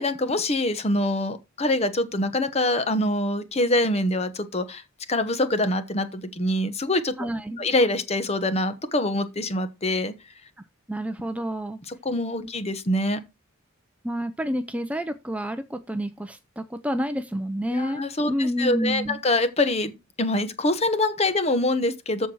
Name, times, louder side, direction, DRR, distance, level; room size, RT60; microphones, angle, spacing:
voice 1, 0.0-4.8 5.1-7.1 7.6-10.1 12.0-13.2 17.7-22.3, left 1 dB, 30° left, 1.0 m, -25 dB
voice 2, 7.2-7.6 10.9-11.8 14.0-19.2, equal, 5° right, 0.5 m, -29 dB
14.0 x 4.6 x 4.8 m
head